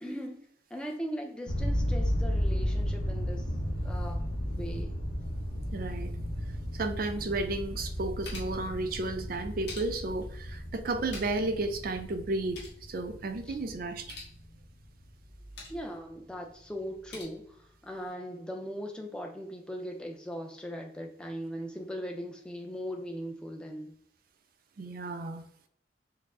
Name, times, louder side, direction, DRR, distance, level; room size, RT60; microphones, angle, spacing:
voice 1, 0.0-3.5 3.8-4.9 13.5-13.6 15.7-23.9, equal, 5° left, 1 dB, 0.5 m, -39 dB
sound 1, 1.5-15.1, equal, 75° left, 0.8 m, -34 dB
voice 2, 5.7-6.1 6.7-14.1 24.8-25.4, right 2 dB, 50° right, 8 dB, 0.4 m, -33 dB
sound 2, 7.8-8.7 9.4-10.2 10.9-11.5 11.8-11.9 12.2-12.8 13.9-14.4 15.2-15.9 16.8-17.2, left 2 dB, 55° left, 1.4 m, -46 dB
4.6 x 2.0 x 3.6 m, 0.66 s
head